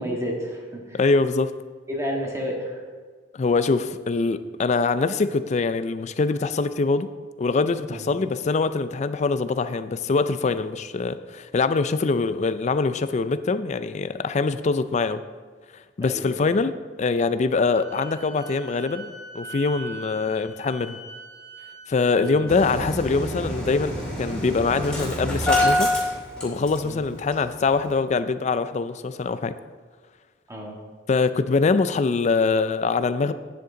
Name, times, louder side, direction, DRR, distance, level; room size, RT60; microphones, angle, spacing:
voice 1, 0.0-1.0 1.9-2.8 7.9-8.1 16.0-16.4 22.1-22.4 26.8-27.1 30.5-30.7, equal, 15° right, -1 dB, 1.7 m, -31 dB
voice 2, 1.0-1.5 3.3-7.1 7.4-15.2 16.0-21.0 21.9-25.9 26.4-29.6 31.1-33.3, left 4 dB, 40° left, 12 dB, 0.4 m, -23 dB
Wind instrument woodwind instrument, 17.7-22.4, right 2 dB, 85° right, 2.4 m, -42 dB
Engine starting, 22.5-27.0 27.3-27.4 27.7-27.9, left 1 dB, 5° left, 2.5 m, -26 dB
9.4 x 7.9 x 3.8 m, 1.5 s
head